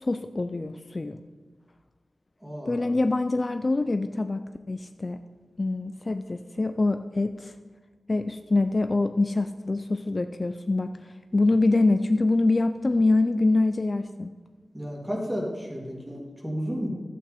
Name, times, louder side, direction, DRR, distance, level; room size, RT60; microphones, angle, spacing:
voice 1, 0.0-1.2 2.7-4.4 4.7-5.2 5.6-7.5 8.1-10.9 11.3-14.3, left 2 dB, 35° left, 9 dB, 0.4 m, -24 dB
voice 2, 2.4-2.9 14.7-16.9, equal, 20° right, -3 dB, 2.7 m, -32 dB
11.5 x 8.2 x 4.2 m, 1.4 s
wide cardioid pair, 85°, 0 cm